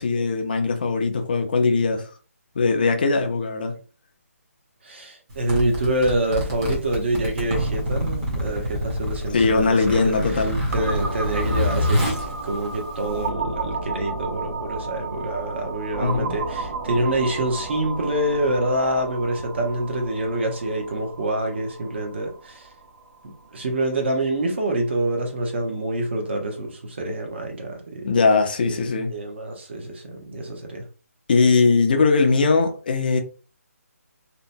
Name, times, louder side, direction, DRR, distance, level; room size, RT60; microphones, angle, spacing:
voice 1, 0.0-2.1 2.6-3.7 9.3-10.6 16.0-16.4 28.0-29.1 31.3-33.2, left 4 dB, 35° left, 0.4 m, -20 dB
voice 2, 4.8-10.2 10.7-22.7 23.2-28.1 28.6-30.8, right 1 dB, 45° right, 0.9 m, -26 dB
Zipper (clothing), 5.3-13.3, equal, 15° right, 0.8 m, -27 dB
sound 1, 10.7-24.3, right 3 dB, 75° right, 0.9 m, -33 dB
2.8 x 2.1 x 2.6 m
hypercardioid pair, 165°, 8 cm